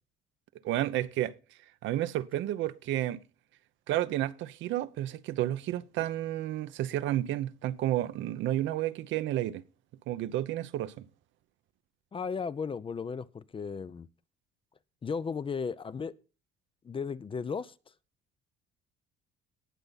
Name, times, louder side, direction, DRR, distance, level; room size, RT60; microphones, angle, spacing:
voice 1, 0.6-1.3 1.8-3.2 3.9-9.6 10.1-11.1, right 13 dB, 75° right, 0.9 m, -31 dB
voice 2, 12.1-14.1 15.0-16.1 16.8-17.7, left 5 dB, 25° left, 0.6 m, -35 dB
18.5 x 6.8 x 4.0 m
cardioid pair, 110°, 20 cm